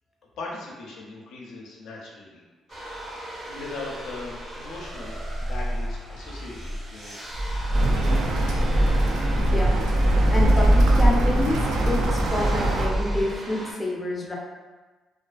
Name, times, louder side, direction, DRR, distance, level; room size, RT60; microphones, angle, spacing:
voice 1, 0.4-2.4 2.8-7.1 7.9-8.4, left 2 dB, 85° left, -3 dB, 0.5 m, -40 dB
sound 1, 2.7-13.7, equal, 35° right, 0.5 m, -35 dB
sound 2, 7.3-13.3, right 1 dB, 65° right, 1.2 m, -22 dB
sound 3, 7.7-12.9, right 2 dB, 85° right, 0.3 m, -28 dB
voice 2, 9.4-9.8 10.3-14.4, left 1 dB, 15° left, -2 dB, 0.4 m, -28 dB
2.3 x 2.2 x 2.4 m, 1.3 s
cardioid pair, 90°, 0 cm